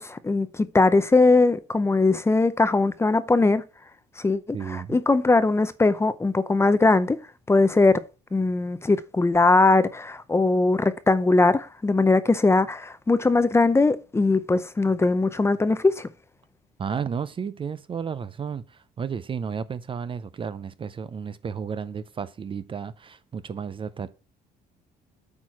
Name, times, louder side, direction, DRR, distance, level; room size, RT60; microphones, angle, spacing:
voice 1, 0.0-3.6 4.2-7.2 7.5-8.0 8.3-16.1, left 3 dB, 15° left, 0.6 m, -20 dB
voice 2, 4.5-5.0 16.8-24.1, right 6 dB, 30° right, 0.5 m, -33 dB
8.5 x 4.5 x 4.8 m
cardioid pair, 110°, 17 cm